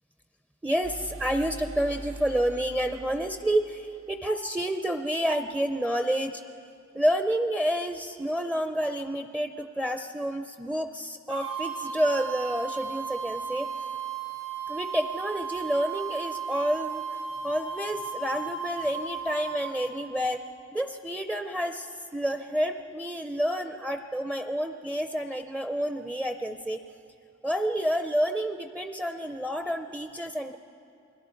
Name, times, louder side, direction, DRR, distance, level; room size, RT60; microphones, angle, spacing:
voice 1, 0.6-6.4 6.9-13.7 14.7-20.4 20.7-26.8 27.4-30.6, equal, 10° right, 7 dB, 0.5 m, -29 dB
sound 1, 0.8-4.6, right 1 dB, 70° right, 1.9 m, -43 dB
sound 2, 11.3-19.9, right 6 dB, 90° right, 5.3 m, -35 dB
28.5 x 21.5 x 4.5 m, 2.5 s
head